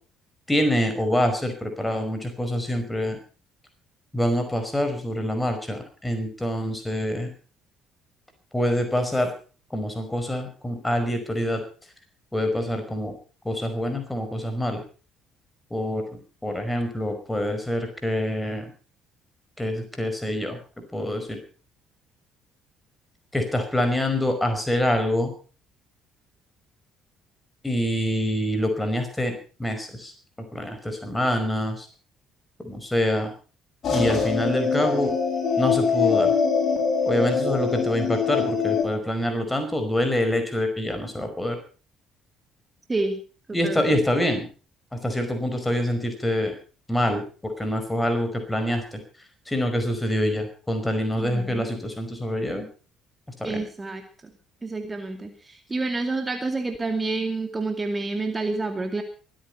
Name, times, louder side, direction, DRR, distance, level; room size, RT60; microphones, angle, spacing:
voice 1, 0.5-3.2 4.1-7.3 8.5-9.3 9.7-11.6 12.3-13.1 13.4-14.8 15.7-18.7 19.6-20.6 20.9-21.4 23.3-25.3 27.6-30.1 30.5-31.9 32.6-33.3 33.9-35.1 35.6-36.3 37.0-41.6 43.5-44.5 44.9-46.5 46.9-49.0 49.5-52.7 53.4-53.6, left 1 dB, 10° left, 6 dB, 5.1 m, -26 dB
sound 1, 33.8-38.8, left 5 dB, 45° left, 8.0 m, -23 dB
voice 2, 51.2-51.7 53.4-54.0 54.6-59.0, right 3 dB, 20° right, 6 dB, 2.4 m, -28 dB
23.5 x 9.5 x 5.4 m, 0.38 s
figure-of-eight pair, 50°, 0 cm